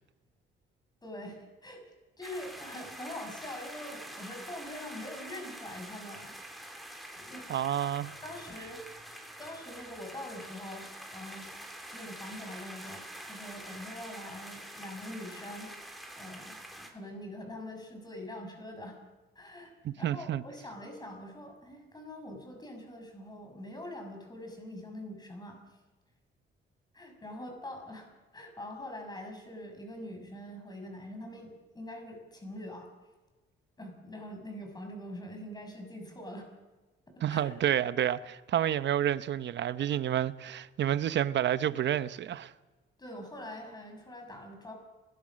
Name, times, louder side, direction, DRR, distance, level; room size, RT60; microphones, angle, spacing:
voice 1, 1.0-1.8 2.2-6.4 7.1-7.5 7.8-8.0 8.2-8.8 9.4-11.5 11.9-15.7 16.2-19.0 19.3-25.8 26.9-28.1 28.3-32.9 33.8-36.5 37.3-37.5 43.0-44.7, left 1 dB, 20° left, 6.6 m, -44 dB
sound 1, 2.2-16.9, right 1 dB, ahead, 3.6 m, -46 dB
voice 2, 7.5-8.1 19.8-20.4 37.2-42.5, right 11 dB, 65° right, 0.9 m, -29 dB
25.5 x 20.5 x 6.4 m
cardioid pair, 90°, 20 cm